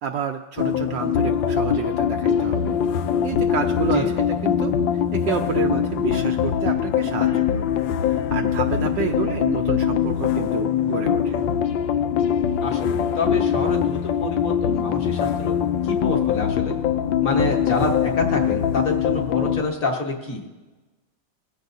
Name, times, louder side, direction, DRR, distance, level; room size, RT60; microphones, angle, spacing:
voice 1, 0.0-2.8 3.2-7.7 8.0-11.4, right 8 dB, 70° right, 3 dB, 1.2 m, -29 dB
sound 1, 0.6-19.6, left 9 dB, 75° left, 1.3 m, -22 dB
voice 2, 12.6-15.5 15.8-16.7 17.2-20.5, left 3 dB, 45° left, 0 dB, 1.7 m, -27 dB
21.5 x 15.0 x 2.7 m, 1.2 s
omnidirectional pair, 2.2 m